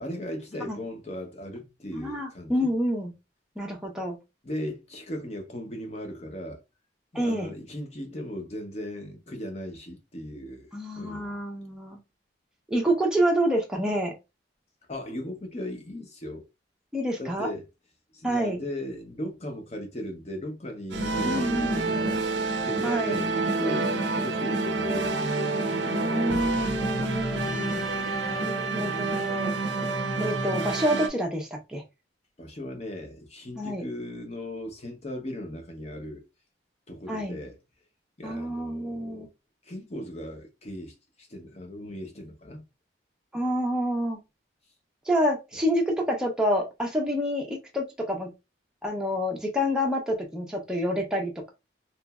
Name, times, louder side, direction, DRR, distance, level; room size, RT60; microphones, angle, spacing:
voice 1, 0.0-2.7 4.4-6.6 7.1-10.7 11.0-11.4 14.9-16.5 17.2-17.7 18.1-22.2 22.6-25.3 32.4-36.2 36.9-37.6 38.2-39.3 39.6-42.6, left 1 dB, 35° left, 0.7 m, -37 dB
voice 2, 1.9-3.1 3.6-4.2 7.1-7.5 10.7-12.0 12.7-14.1 16.9-17.5 18.2-18.6 21.2-22.1 22.8-23.2 25.9-27.8 28.2-29.6 30.2-31.8 33.6-33.8 37.1-37.4 38.2-39.3 43.3-44.2 45.1-48.3 48.8-51.5, equal, 5° right, 0.6 m, -28 dB
sound 1, 20.9-31.1, right 3 dB, 70° right, 0.5 m, -28 dB
2.9 x 2.5 x 2.3 m
head